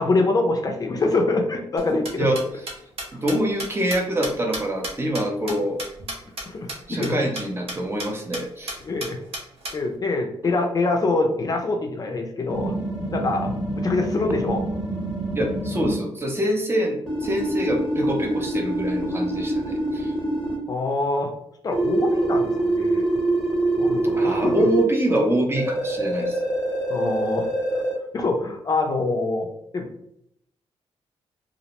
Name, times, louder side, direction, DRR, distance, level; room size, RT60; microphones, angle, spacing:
voice 1, 0.0-2.3 3.1-3.2 5.4-5.7 6.5-7.3 8.8-9.2 9.7-12.7 13.1-14.6 20.7-21.3 21.6-23.1 23.8-24.7 26.9-27.5 27.7-27.8 28.1-29.5 29.7-29.9, left 3 dB, 35° left, 3 dB, 0.4 m, -25 dB
sound 1, 1.8-6.4 6.7-6.8 7.0-7.1 7.3-7.4 7.7-8.1 8.3-8.4 8.7-9.7, right 1 dB, 65° right, 0.8 m, -32 dB
voice 2, 3.1-5.8 6.9-8.8 15.4-20.1 24.2-26.4, right 1 dB, 20° right, 2 dB, 0.5 m, -25 dB
sound 2, 12.5-16.0 17.1-20.6 21.7-24.8 25.6-27.9, right 2 dB, ahead, 0.9 m, -25 dB
2.5 x 2.0 x 2.8 m, 0.75 s
cardioid pair, 95°, 11 cm